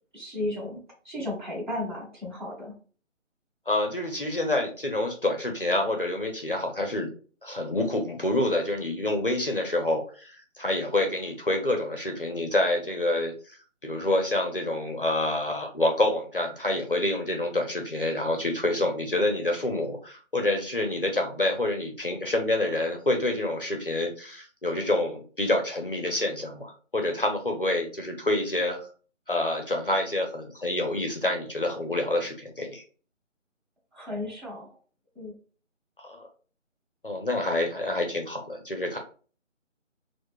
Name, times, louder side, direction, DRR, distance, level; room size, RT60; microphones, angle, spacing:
voice 1, 0.1-2.7 33.9-34.7 35.1-35.3, left 1 dB, 40° right, -4 dB, 1.5 m, -34 dB
voice 2, 3.7-7.1 7.4-28.8 29.3-32.8 36.0-36.3 37.0-39.0, left 1 dB, 45° left, 3 dB, 0.5 m, -27 dB
4.6 x 2.1 x 2.2 m, 0.40 s
figure-of-eight pair, 170°, 38 cm